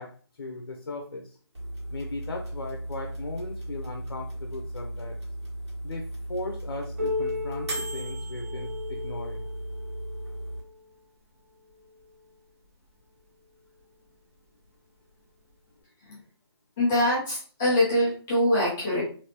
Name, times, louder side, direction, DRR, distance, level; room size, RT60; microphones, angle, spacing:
voice 1, 0.0-1.4 1.9-5.2 5.8-9.5, left 2 dB, 65° left, 2 dB, 0.7 m, -38 dB
sound 1, 1.5-10.6, right 1 dB, 85° right, 1.7 m, -36 dB
Piano, 7.0-12.3 13.2-13.3 13.8-13.9 14.6-14.7 15.8-15.9, left 3 dB, 30° right, 0.8 m, -36 dB
voice 2, 16.8-19.0, left 1 dB, 5° left, -9 dB, 0.3 m, -24 dB
3.3 x 2.8 x 2.8 m, 0.43 s
hypercardioid pair, 175°, 14 cm